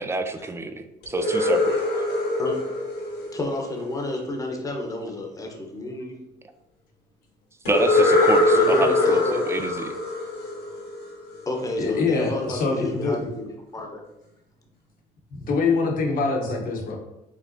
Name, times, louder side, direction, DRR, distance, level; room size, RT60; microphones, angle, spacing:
voice 1, 0.0-2.0 7.7-10.0, right 2 dB, 15° right, 7 dB, 0.4 m, -27 dB
sound 1, 1.0-4.0 7.6-11.4, left 2 dB, 80° left, 1.5 m, -22 dB
voice 2, 3.3-6.1 8.5-9.5 11.5-14.0, left 2 dB, 20° left, 1 dB, 1.0 m, -31 dB
voice 3, 11.8-13.3 15.3-17.0, left 4 dB, 55° left, 2 dB, 1.1 m, -24 dB
5.1 x 3.3 x 2.8 m, 0.92 s
cardioid pair, 110°, 17 cm